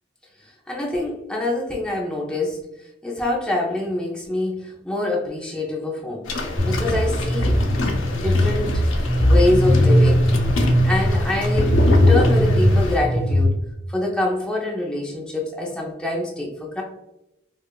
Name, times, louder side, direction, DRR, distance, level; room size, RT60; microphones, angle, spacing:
voice 1, 0.7-6.2 6.6-7.6 8.1-8.8 9.2-10.3 10.8-13.6 13.9-16.8, left 2 dB, 5° left, -3 dB, 0.5 m, -25 dB
sound 1, 6.2-13.0, left 1 dB, 90° left, 0.6 m, -27 dB
sound 2, 6.6-13.4, equal, 40° left, 1.3 m, -19 dB
4.7 x 2.3 x 2.2 m, 0.92 s
head